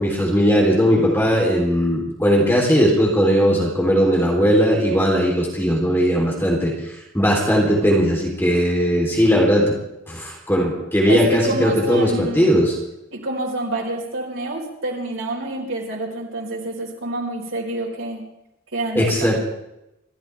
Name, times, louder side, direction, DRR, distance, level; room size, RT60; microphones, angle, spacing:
voice 1, 0.0-6.7 7.1-9.7 10.1-12.7 18.9-19.4, equal, 10° left, -2 dB, 3.6 m, -18 dB
voice 2, 11.0-12.6 13.1-18.2 18.7-19.4, right 1 dB, 85° right, -2 dB, 4.7 m, -27 dB
28.0 x 13.5 x 3.5 m, 0.87 s
head